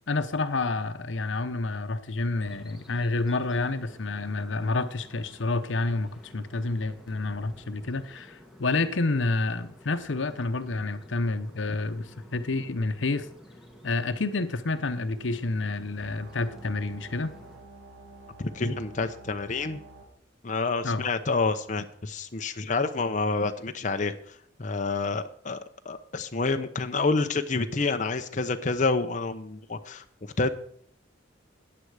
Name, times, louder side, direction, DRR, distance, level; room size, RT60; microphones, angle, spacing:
voice 1, 0.1-13.3 13.8-17.3 20.8-21.1, left 3 dB, 75° left, 11 dB, 0.9 m, -29 dB
sound 1, 2.4-17.6, left 1 dB, ahead, 2.0 m, -51 dB
sound 2, 16.0-20.0, right 2 dB, 80° right, 2.8 m, -49 dB
voice 2, 18.4-19.8 20.4-24.1 24.6-25.6 25.8-30.0 30.4-30.5, left 3 dB, 40° left, 7 dB, 0.7 m, -28 dB
14.5 x 9.8 x 4.9 m, 0.62 s
head